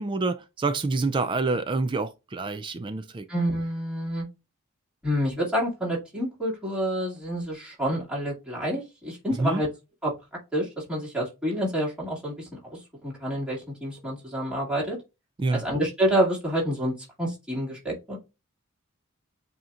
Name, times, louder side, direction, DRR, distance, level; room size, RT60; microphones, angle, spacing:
voice 1, 0.0-3.2 9.4-9.6 15.4-15.6, right 3 dB, 20° right, 0.3 m, -27 dB
voice 2, 3.3-4.3 5.0-9.7 10.0-10.1 10.5-15.0 15.5-18.2, equal, 5° right, 2.2 m, -28 dB
7.7 x 2.8 x 2.4 m
head